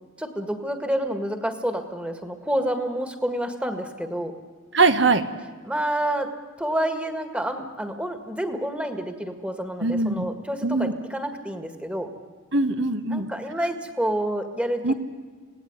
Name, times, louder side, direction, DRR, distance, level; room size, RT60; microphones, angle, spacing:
voice 1, 0.2-4.3 5.6-6.3 6.6-12.1 13.1-14.9, right 1 dB, 5° right, 7 dB, 1.8 m, -28 dB
voice 2, 4.7-5.3 9.8-10.3 10.6-10.9 12.5-13.3 14.8-14.9, right 3 dB, 60° right, 9 dB, 1.3 m, -21 dB
26.5 x 18.0 x 9.6 m, 1.6 s
head